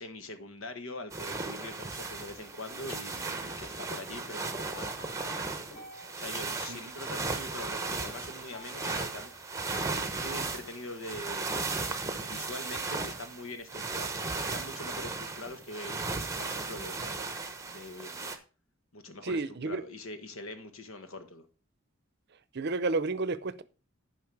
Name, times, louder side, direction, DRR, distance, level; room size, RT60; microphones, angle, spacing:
voice 1, 0.0-4.9 5.7-9.8 10.1-11.6 12.2-14.2 14.5-17.3 17.6-18.3 18.9-21.5, left 2 dB, 85° left, 1.3 m, -43 dB
sound 1, 1.1-18.4, right 3 dB, 15° right, 0.9 m, -36 dB
sound 2, 4.7-7.4 8.5-10.3, left 2 dB, 40° left, 2.6 m, -52 dB
voice 2, 19.2-19.8 22.5-23.6, right 3 dB, 55° right, 0.6 m, -31 dB
11.0 x 5.2 x 4.7 m
head